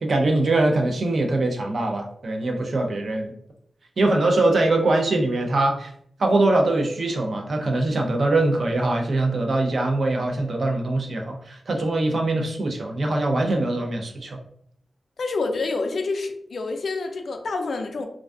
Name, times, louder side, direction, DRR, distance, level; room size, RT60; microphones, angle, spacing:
voice 1, 0.0-3.3 4.0-5.9 6.2-14.4, right 2 dB, 50° right, 2 dB, 0.4 m, -22 dB
voice 2, 15.2-18.1, left 3 dB, 60° left, 5 dB, 0.3 m, -27 dB
2.4 x 2.3 x 2.3 m, 0.67 s
wide cardioid pair, 135°, 0 cm